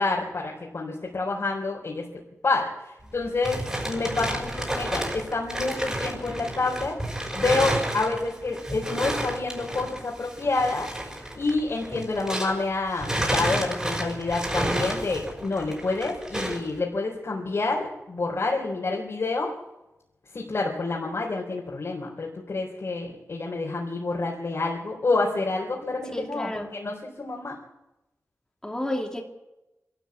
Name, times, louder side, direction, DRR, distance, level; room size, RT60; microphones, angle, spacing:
voice 1, 0.0-2.0 2.4-7.0 7.3-10.9 11.3-19.5 20.3-27.5, left 3 dB, 60° left, -3 dB, 3.9 m, -28 dB
sound 1, 3.0-12.7 13.0-16.7, right 1 dB, 15° right, 5.4 m, -31 dB
voice 2, 26.1-26.7 28.6-29.2, left 1 dB, 10° left, 0 dB, 2.8 m, -31 dB
25.5 x 13.0 x 8.5 m, 0.96 s
wide cardioid pair, 105°, 5 cm